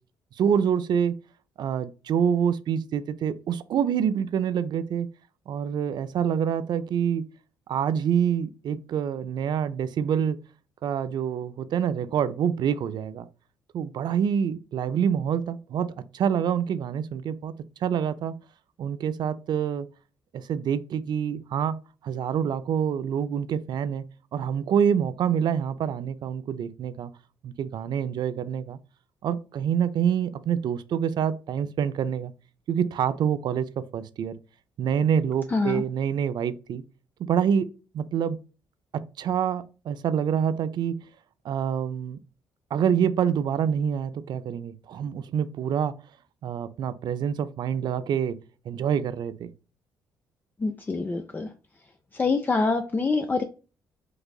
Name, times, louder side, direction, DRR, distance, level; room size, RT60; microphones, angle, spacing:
voice 1, 0.4-1.2 1.6-5.1 5.5-7.3 7.7-10.4 10.8-13.3 13.7-15.9 16.1-17.5 17.8-18.4 18.8-19.9 20.3-21.8 22.0-24.0 24.3-27.1 27.4-28.8 29.2-32.3 32.7-34.3 34.8-36.8 37.3-37.7 37.9-38.4 38.9-41.0 41.4-42.2 42.7-45.9 46.4-48.4 48.7-49.5, right 8 dB, 60° right, 0.4 m, -26 dB
voice 2, 35.5-35.8 50.6-51.5 52.1-53.4, left 3 dB, 20° left, 0.4 m, -25 dB
4.7 x 2.5 x 2.3 m
cardioid pair, 80°, 8 cm